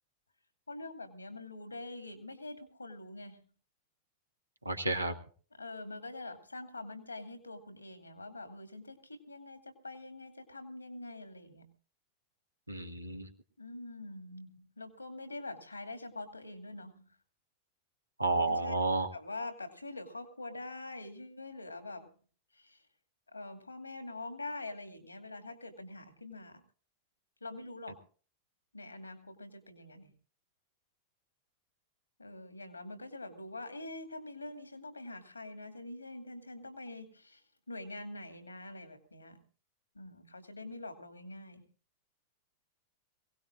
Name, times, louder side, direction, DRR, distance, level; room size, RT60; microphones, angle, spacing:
voice 1, 0.7-3.4 5.6-11.7 13.6-17.2 18.4-18.8 19.1-22.1 22.5-22.8 23.3-26.6 27.4-28.0 28.7-30.1 32.2-37.4 37.7-39.4 39.9-41.6, left 2 dB, 80° left, 6 dB, 2.4 m, -45 dB
voice 2, 4.6-5.1 12.7-13.3 18.2-19.1, right 2 dB, 85° right, 4 dB, 1.6 m, -31 dB
22.5 x 18.0 x 2.5 m, 0.40 s
figure-of-eight pair, 90°, 0 cm